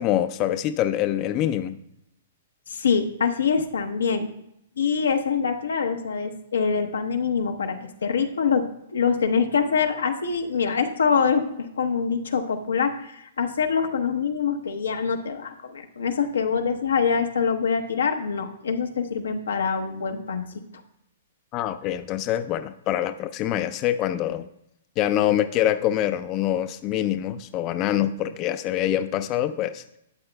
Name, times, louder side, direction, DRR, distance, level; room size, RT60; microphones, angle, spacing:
voice 1, 0.0-1.8 21.5-24.5 25.0-29.8, left 12 dB, 30° left, 10 dB, 0.3 m, -25 dB
voice 2, 2.7-4.3 4.8-20.4, left 6 dB, 90° left, 5 dB, 0.8 m, -25 dB
12.0 x 7.9 x 2.2 m, 0.80 s
hypercardioid pair, 140°, 0 cm